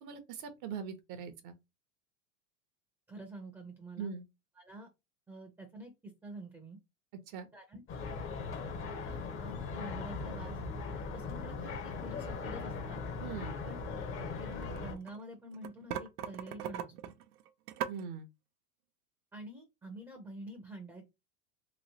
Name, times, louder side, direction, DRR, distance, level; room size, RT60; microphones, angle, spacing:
voice 1, 0.0-1.6 4.0-4.2 7.3-7.5 13.2-13.6 17.9-18.3, right 7 dB, 45° right, 0.7 m, -41 dB
voice 2, 3.1-4.1 4.6-4.9 5.3-6.8 7.5-7.8 8.6-8.7 9.0-10.6 11.1-13.0 13.6-13.8 14.2-16.9 19.3-21.0, right 1 dB, 5° right, 0.6 m, -48 dB
sound 1, 7.9-14.9, left 4 dB, 30° left, 0.7 m, -39 dB
sound 2, 14.3-15.2 15.5-18.0, right 9 dB, 85° right, 0.6 m, -39 dB
3.0 x 2.9 x 2.8 m
supercardioid pair, 125°, 44 cm